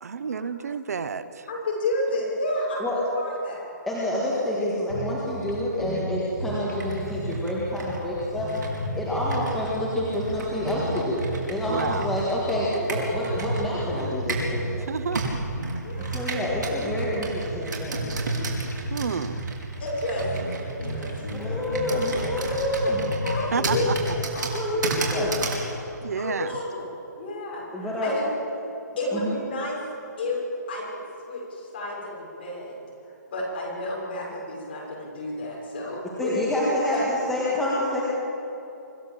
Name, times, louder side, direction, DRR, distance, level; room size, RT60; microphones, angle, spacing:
voice 1, 0.0-1.5 11.7-12.1 14.8-15.4 18.9-19.4 23.5-24.0 24.4-24.6 26.0-26.6, right 6 dB, 55° right, 13 dB, 0.8 m, -30 dB
voice 2, 1.5-3.7 15.8-16.3 19.8-21.1 21.4-21.5 23.2-24.6 24.9-25.0 26.2-26.9 27.2-28.2 29.0-29.8 30.2-30.4 30.7-30.8 31.3-32.8 33.3-36.3, left 1 dB, 35° left, -3 dB, 6.1 m, -31 dB
voice 3, 3.9-8.5 9.0-14.8 16.1-18.1 21.3-23.1 24.5-25.4 27.7-28.2 29.1-29.4 36.2-38.0, left 1 dB, ahead, -7 dB, 1.7 m, -27 dB
sound 1, 4.9-5.2 5.5-5.6 5.8-7.4 7.9-10.0 10.3-12.2 12.6-12.7 13.1-14.8 15.1-15.8 16.0-17.1 17.5-19.6 19.9-20.0 20.2-20.5 20.8-24.1, right 1 dB, 75° left, 5.1 m, -33 dB
Computer keyboard, 6.7-14.6 15.1-25.7, right 3 dB, 80° right, 4.7 m, -33 dB
25.0 x 15.0 x 7.5 m, 3.0 s
hypercardioid pair, 175°, 10 cm